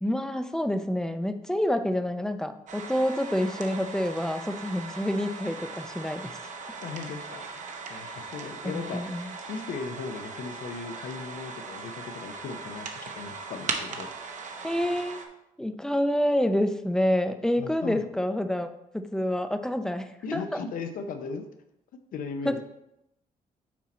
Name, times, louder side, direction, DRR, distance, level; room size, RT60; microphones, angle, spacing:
voice 1, 0.0-6.4 8.7-9.3 14.6-15.2 15.6-18.7 18.9-20.6 22.4-22.6, left 1 dB, 5° left, 9 dB, 0.4 m, -28 dB
sound 1, 2.7-15.3, right 4 dB, 55° right, 0.8 m, -39 dB
voice 2, 6.8-9.0 9.5-14.1 17.6-18.1 20.2-21.4 22.1-22.6, left 5 dB, 70° left, 7 dB, 0.6 m, -37 dB
6.2 x 4.3 x 4.2 m, 0.85 s
cardioid pair, 130°, 15 cm